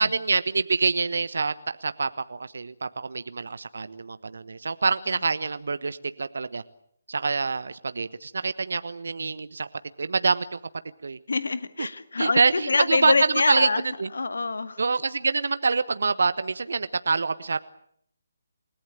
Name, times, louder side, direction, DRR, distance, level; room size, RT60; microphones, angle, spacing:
voice 1, 0.0-6.6 7.1-9.7 10.0-10.6 11.0-11.2 11.8-11.9 12.2-13.7 14.0-14.1 14.8-17.6, right 4 dB, 65° right, 13 dB, 1.1 m, -26 dB
voice 2, 11.3-13.8 14.1-14.8, left 3 dB, 65° left, 12 dB, 1.9 m, -25 dB
29.0 x 18.5 x 9.0 m, 0.69 s
figure-of-eight pair, 145°, 0 cm